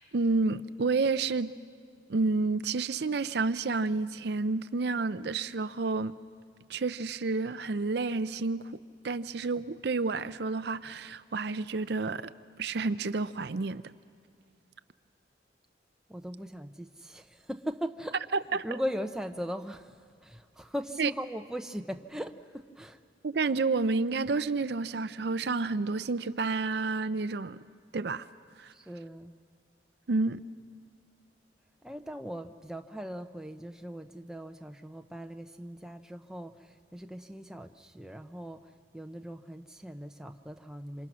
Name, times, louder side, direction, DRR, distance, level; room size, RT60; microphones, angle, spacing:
voice 1, 0.1-1.5 2.1-6.2 6.7-8.7 9.0-12.3 12.6-13.8 18.5-18.6 21.0-21.1 23.2-27.6 27.9-28.3 28.6-28.7 30.1-30.4, right 3 dB, 60° right, 0.5 m, -30 dB
voice 2, 16.1-18.2 18.5-23.0 28.7-29.3 31.8-41.1, equal, 5° right, 0.7 m, -39 dB
27.0 x 26.5 x 6.2 m
head